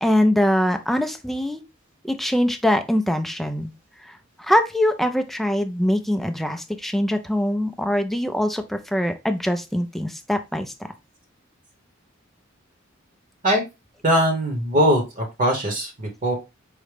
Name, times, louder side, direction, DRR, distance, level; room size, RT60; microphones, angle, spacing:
voice 1, 0.0-1.6 2.0-3.7 4.0-10.7, equal, ahead, 7 dB, 0.3 m, -23 dB
voice 2, 14.0-16.3, equal, 40° right, 2 dB, 0.9 m, -21 dB
4.8 x 2.1 x 3.2 m, 0.24 s
head